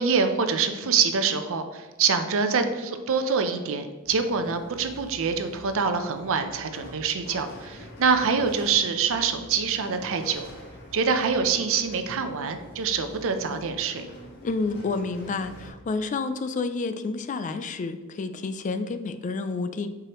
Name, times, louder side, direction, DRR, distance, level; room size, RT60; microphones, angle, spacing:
voice 1, 0.0-10.5 10.9-14.1, right 5 dB, 65° right, 8 dB, 0.6 m, -25 dB
sound 1, 4.0-15.7, left 1 dB, 55° left, 1.6 m, -46 dB
voice 2, 14.4-19.9, left 3 dB, 35° left, 10 dB, 0.3 m, -29 dB
7.6 x 4.8 x 3.0 m, 1.2 s
head